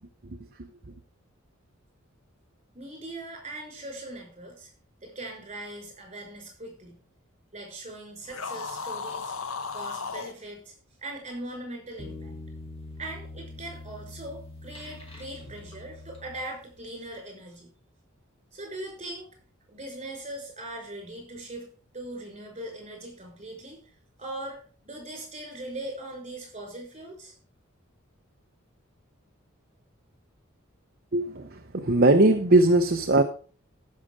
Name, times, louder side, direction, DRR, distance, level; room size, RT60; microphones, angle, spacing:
voice 1, 2.7-4.7 5.0-7.0 7.5-9.3 9.7-10.7 11.0-12.4 13.0-17.7 18.5-19.3 19.7-21.7 21.9-23.8 24.2-27.3, right 1 dB, 30° right, 5.7 m, -40 dB
sound 1, 8.3-10.4, left 5 dB, 80° left, 0.9 m, -35 dB
sound 2, 12.0-16.9, left 2 dB, 30° left, 3.4 m, -43 dB
voice 2, 31.1-31.5 31.7-33.2, right 2 dB, 50° right, 0.9 m, -19 dB
14.5 x 6.6 x 4.9 m
head